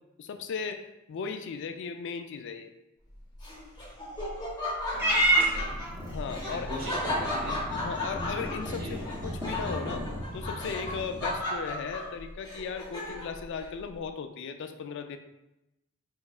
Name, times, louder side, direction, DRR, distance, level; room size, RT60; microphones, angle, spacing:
voice 1, 0.2-2.7 6.1-6.8 7.8-10.1 10.3-15.2, left 6 dB, 60° left, 8 dB, 0.3 m, -37 dB
Laughter, 3.4-13.4, left 1 dB, 20° left, 0.8 m, -35 dB
Purr / Meow, 4.9-11.4, right 1 dB, 10° right, 0.6 m, -31 dB
voice 2, 4.9-5.7 6.5-7.6 8.8-9.0, right 1 dB, 45° right, -2 dB, 0.9 m, -40 dB
4.5 x 3.1 x 2.4 m, 0.93 s
head